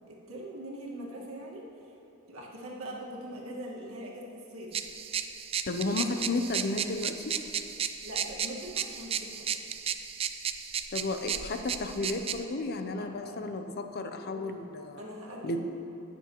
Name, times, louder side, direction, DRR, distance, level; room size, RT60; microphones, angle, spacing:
voice 1, 0.1-1.6 2.3-4.7 8.0-9.5 12.8-13.4 14.3-14.4 15.0-15.6, right 1 dB, 70° right, -3 dB, 1.7 m, -42 dB
sound 1, 4.7-12.4, right 8 dB, 25° right, 0.3 m, -34 dB
voice 2, 5.7-7.3 10.9-15.0 15.4-15.6, left 2 dB, 45° left, 6 dB, 0.6 m, -33 dB
19.0 x 7.0 x 3.0 m, 2.8 s
head